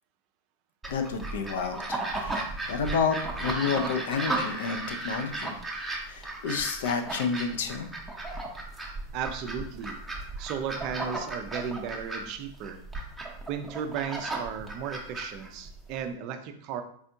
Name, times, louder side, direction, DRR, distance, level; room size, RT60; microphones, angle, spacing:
sound 1, 0.8-16.0, right 2 dB, 5° right, 0.7 m, -35 dB
voice 1, 0.9-5.6 6.1-7.9, left 5 dB, 55° left, 6 dB, 0.4 m, -30 dB
voice 2, 9.1-10.0 10.4-12.8 13.5-16.8, right 7 dB, 40° right, 8 dB, 0.4 m, -35 dB
4.2 x 3.4 x 2.6 m, 0.63 s
figure-of-eight pair, 90°, 0 cm